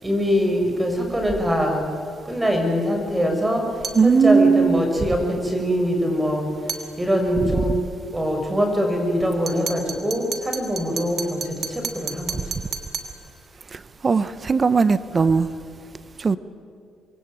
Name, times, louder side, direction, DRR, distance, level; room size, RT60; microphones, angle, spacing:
voice 1, 0.0-1.9 2.2-6.4 7.0-7.7 8.1-12.4, equal, 15° right, 3 dB, 6.4 m, -23 dB
sound 1, 3.8-4.1 6.7-6.9 9.5-13.2, right 5 dB, 50° right, 3.1 m, -32 dB
voice 2, 3.9-4.9 13.7-15.5 16.2-16.4, right 5 dB, 35° right, 14 dB, 1.0 m, -18 dB
26.0 x 23.0 x 9.1 m, 2.3 s
cardioid pair, 90°, 0 cm